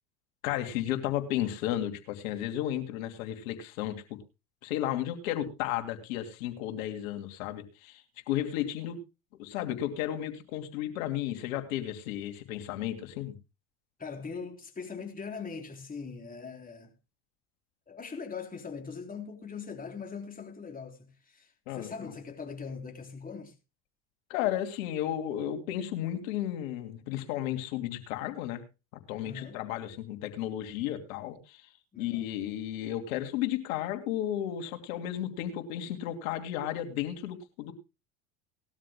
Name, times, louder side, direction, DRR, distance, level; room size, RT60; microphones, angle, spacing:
voice 1, 0.4-4.2 4.6-9.0 9.4-13.3 21.7-21.9 24.3-28.6 29.1-31.7 32.0-37.7, left 12 dB, 70° left, 2.9 m, -33 dB
voice 2, 14.0-17.0 17.9-23.5 29.2-29.6 31.9-32.3, left 5 dB, 20° left, 3.9 m, -41 dB
20.0 x 13.0 x 2.2 m
hypercardioid pair, 90°, 41 cm